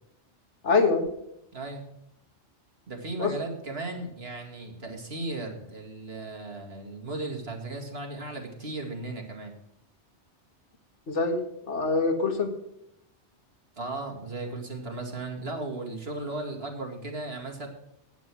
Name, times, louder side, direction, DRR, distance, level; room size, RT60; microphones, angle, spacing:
voice 1, 0.6-1.1 3.2-3.3 11.1-12.5, left 4 dB, 80° left, 5 dB, 2.0 m, -24 dB
voice 2, 1.5-1.9 2.9-9.5 13.8-17.7, right 2 dB, 60° right, 1 dB, 2.5 m, -36 dB
11.0 x 9.3 x 6.2 m, 0.80 s
omnidirectional pair, 1.2 m